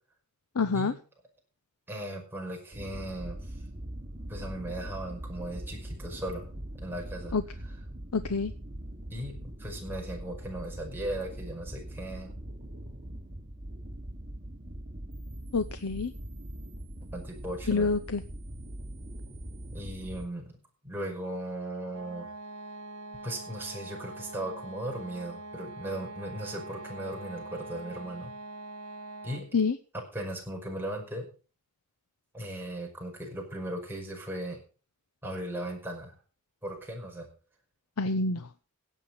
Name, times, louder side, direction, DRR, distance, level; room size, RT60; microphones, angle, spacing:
voice 1, 0.6-0.9 7.3-7.4 8.1-8.5 15.5-16.1 17.7-18.2 29.5-29.7 38.0-38.4, left 4 dB, 85° left, 11 dB, 0.8 m, -27 dB
voice 2, 1.9-3.6 4.3-7.4 7.6-7.7 9.1-12.3 17.1-17.9 19.7-22.3 23.1-28.4 29.2-29.6 29.9-31.3 32.3-34.6 35.2-36.2 36.6-37.3, right 1 dB, 10° right, -1 dB, 5.4 m, -37 dB
sound 1, 2.7-20.3, right 1 dB, 35° right, 3.8 m, -41 dB
sound 2, 21.9-29.6, right 2 dB, 85° right, 2.0 m, -43 dB
17.0 x 8.3 x 5.3 m, 0.37 s
head